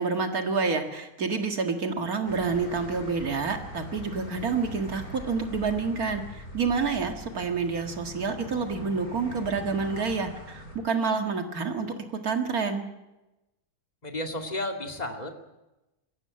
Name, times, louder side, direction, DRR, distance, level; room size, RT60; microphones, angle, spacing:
voice 1, 0.0-11.9 12.2-12.9, right 4 dB, 75° right, 5 dB, 2.3 m, -28 dB
sound 1, 2.3-10.8, left 1 dB, 75° left, 6.5 m, -42 dB
voice 2, 14.0-15.3, left 1 dB, 25° left, 3 dB, 2.3 m, -32 dB
21.5 x 16.0 x 8.8 m, 1.0 s
omnidirectional pair, 1.6 m